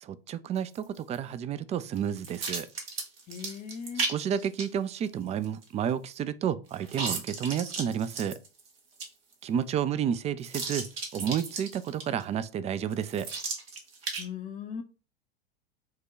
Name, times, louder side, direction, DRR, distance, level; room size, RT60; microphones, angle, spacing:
voice 1, 0.0-2.7 4.0-8.4 9.4-13.3, right 8 dB, 25° right, 0.3 m, -31 dB
sound 1, 0.6-1.2 2.0-4.7 5.0-5.1 5.4-5.9 6.7-8.7 9.0-9.1 9.3-9.4 10.4-12.2 12.9-14.2, right 4 dB, 85° right, 1.5 m, -35 dB
voice 2, 3.3-4.1 14.2-14.8, left 7 dB, 30° left, 0.6 m, -38 dB
4.6 x 2.2 x 4.7 m
hypercardioid pair, 95°, 29 cm